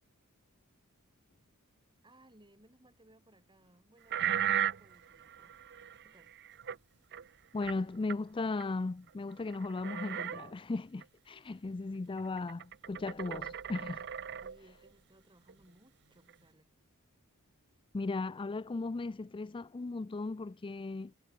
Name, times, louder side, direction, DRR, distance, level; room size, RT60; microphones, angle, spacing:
voice 1, 2.0-5.5 6.0-6.3 14.4-16.7, right 1 dB, 20° right, 6.2 m, -63 dB
sound 1, 4.1-6.8 7.1-7.3 7.6-7.8 8.1-8.2 8.6-8.7 9.1-9.2 9.4-10.5 11.0-11.1 12.2-14.9 15.5-15.6 16.3-16.4, right 10 dB, 50° right, 0.8 m, -37 dB
voice 2, 7.5-14.1 17.9-21.2, left 3 dB, 25° left, 0.4 m, -37 dB
head